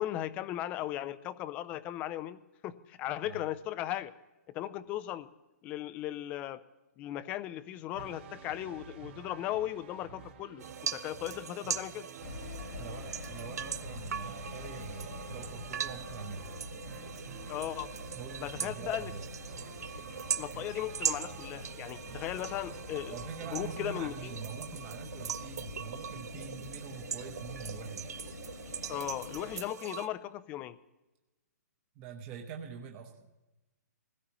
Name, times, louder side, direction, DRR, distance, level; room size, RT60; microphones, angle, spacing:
voice 1, 0.0-4.1 4.5-5.3 5.6-6.6 7.0-10.7 10.9-12.1 17.5-17.9 18.4-19.1 20.3-23.2 23.5-24.4 28.9-30.8, left 13 dB, 15° left, 15 dB, 0.4 m, -37 dB
sound 1, 7.9-24.3, right 7 dB, 40° right, 1.4 m, -50 dB
sound 2, 10.6-30.1, right 8 dB, 65° right, 0.7 m, -41 dB
sound 3, 12.2-29.6, left 4 dB, 75° left, 1.9 m, -47 dB
voice 2, 12.8-16.5 18.1-19.2 23.1-28.2 32.0-33.3, right 6 dB, 20° right, 2 dB, 0.9 m, -44 dB
21.5 x 16.5 x 3.0 m, 1.1 s
hypercardioid pair, 160°, 9 cm